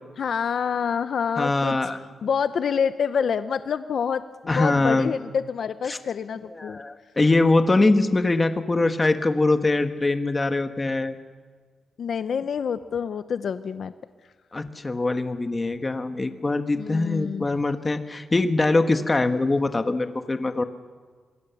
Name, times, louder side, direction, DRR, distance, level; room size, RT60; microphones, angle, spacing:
voice 1, 0.2-1.8 2.2-4.2 4.5-6.8 12.0-13.9 16.8-17.5, left 7 dB, 60° left, 11 dB, 0.7 m, -27 dB
voice 2, 1.4-2.0 4.5-5.1 5.9-6.0 6.5-11.1 14.5-20.6, left 2 dB, 20° left, 7 dB, 1.3 m, -23 dB
27.0 x 21.5 x 7.1 m, 1.5 s
wide cardioid pair, 130°, 0 cm